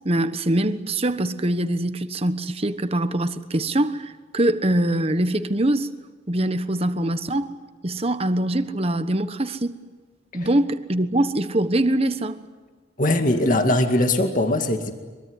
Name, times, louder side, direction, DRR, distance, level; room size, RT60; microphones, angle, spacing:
voice 1, 0.0-5.9 6.3-7.5 7.8-9.8 10.3-12.4, right 1 dB, 35° right, 1.3 m, -23 dB
voice 2, 13.0-14.9, left 1 dB, 45° left, 2.2 m, -20 dB
24.5 x 23.0 x 9.7 m
head